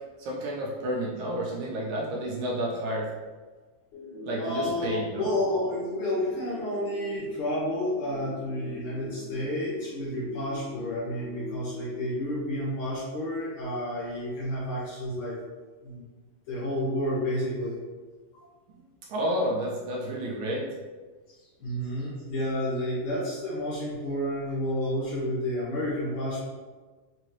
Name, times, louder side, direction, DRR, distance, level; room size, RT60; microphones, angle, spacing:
voice 1, 0.2-3.1 4.2-5.3 19.1-20.7, equal, 75° right, -3 dB, 1.9 m, -30 dB
sound 1, 3.9-12.9, left 3 dB, 65° left, 2.3 m, -43 dB
voice 2, 4.4-15.4 15.8-16.0 16.5-17.8 21.3-26.4, left 1 dB, 80° left, -7 dB, 1.1 m, -30 dB
5.5 x 2.9 x 3.1 m, 1.4 s
omnidirectional pair, 4.0 m